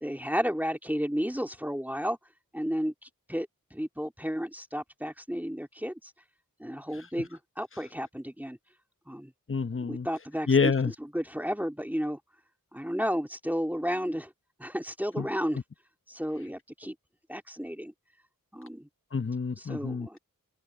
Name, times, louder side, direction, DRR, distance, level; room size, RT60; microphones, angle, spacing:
voice 1, 0.0-2.2 2.5-6.1 6.6-8.6 9.1-9.3 9.8-10.7 11.1-12.2 12.7-14.3 14.6-15.6 16.1-17.0 17.3-17.9 18.5-18.9 19.6-20.2, equal, 5° right, 2.3 m, -32 dB
voice 2, 9.5-10.1 10.5-10.9 15.2-15.3 19.1-20.2, left 5 dB, 35° left, 1.0 m, -27 dB
open air
cardioid pair, 45°, 35 cm